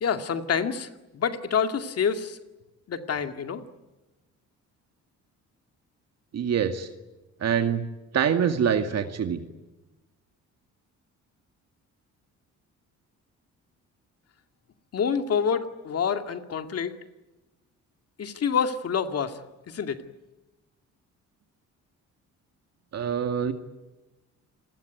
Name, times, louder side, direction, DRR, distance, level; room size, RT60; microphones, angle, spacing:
voice 1, 0.0-0.9 1.1-2.4 2.9-3.6 14.9-17.0 18.2-19.4 19.7-20.0, left 6 dB, 50° left, 7 dB, 2.3 m, -27 dB
voice 2, 6.3-6.9 7.4-7.8 8.1-9.4 22.9-23.5, right 7 dB, 55° right, 7 dB, 2.2 m, -25 dB
29.0 x 20.5 x 9.4 m, 1.1 s
cardioid pair, 120°, 31 cm